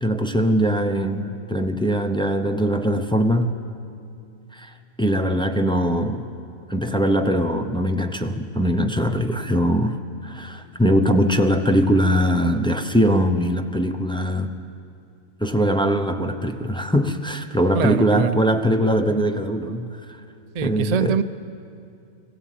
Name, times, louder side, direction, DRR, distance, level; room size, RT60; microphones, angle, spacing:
voice 1, 0.0-3.6 4.5-6.3 6.7-14.5 15.4-20.2 20.6-21.2, equal, 5° left, 5 dB, 0.6 m, -21 dB
voice 2, 17.7-18.4 20.5-21.2, right 7 dB, 65° right, 11 dB, 0.4 m, -23 dB
20.0 x 15.0 x 9.3 m, 2.5 s
omnidirectional pair, 1.4 m